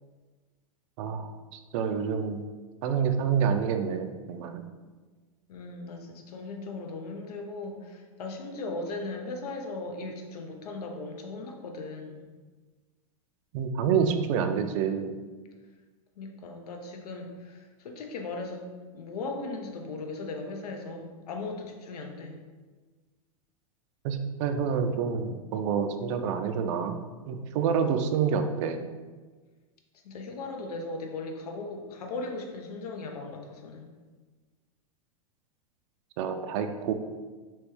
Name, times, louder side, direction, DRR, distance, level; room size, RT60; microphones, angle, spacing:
voice 1, 1.0-2.4 2.8-4.6 13.5-15.2 24.0-28.8 36.2-36.9, right 7 dB, 55° right, 7 dB, 0.4 m, -28 dB
voice 2, 5.5-12.3 16.2-18.6 18.9-22.4 30.0-33.9, left 3 dB, 85° left, 3 dB, 0.7 m, -38 dB
3.3 x 3.0 x 3.1 m, 1.4 s
supercardioid pair, 140°, 19 cm